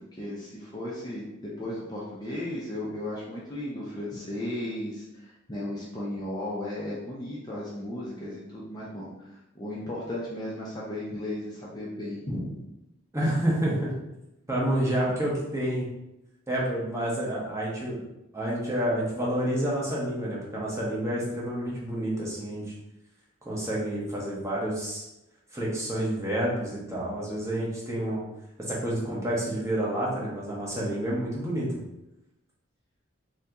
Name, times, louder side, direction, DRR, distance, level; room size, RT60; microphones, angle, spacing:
voice 1, 0.2-1.2 1.6-12.6 13.6-13.7, left 1 dB, 20° left, -6 dB, 0.5 m, -35 dB
voice 2, 13.1-13.9 14.5-15.9 16.5-18.0 18.3-22.7 23.4-25.0 25.5-28.2 28.6-31.7, right 1 dB, 15° right, -6 dB, 0.8 m, -29 dB
2.7 x 2.7 x 3.4 m, 0.90 s
head